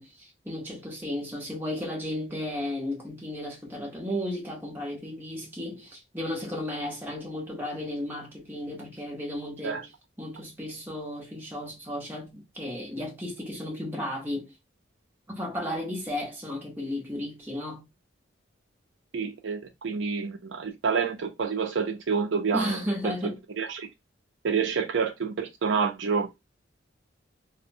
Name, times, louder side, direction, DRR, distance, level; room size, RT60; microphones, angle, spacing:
voice 1, 0.0-9.9 10.2-14.5 15.3-17.9 22.5-23.4, left 1 dB, 10° right, 0.8 m, -34 dB
voice 2, 19.1-22.8 23.0-23.1 23.6-23.9 24.4-26.3, right 5 dB, 70° right, 0.4 m, -28 dB
2.7 x 2.0 x 2.6 m
head